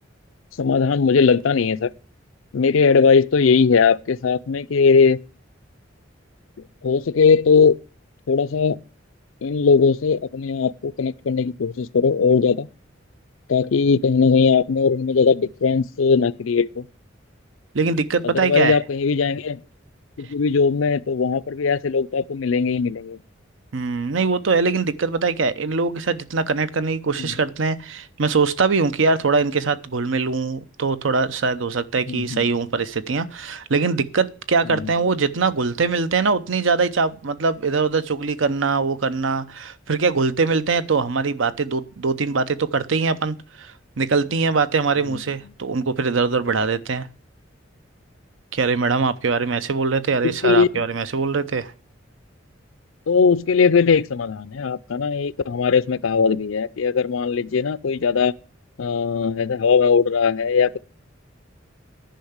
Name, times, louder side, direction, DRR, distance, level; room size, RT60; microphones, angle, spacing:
voice 1, 0.6-1.9 2.5-5.2 6.8-7.7 8.3-8.8 9.4-12.7 13.5-16.9 18.2-19.6 20.2-23.2 27.2-27.3 32.1-32.5 34.7-34.9 45.1-45.2 50.2-50.8 53.1-58.3 58.8-60.8, left 5 dB, 85° left, 0.5 m, -19 dB
voice 2, 17.7-18.8 23.7-43.7 44.0-47.1 48.5-51.7, right 4 dB, 75° right, 0.7 m, -22 dB
10.5 x 5.7 x 7.9 m
head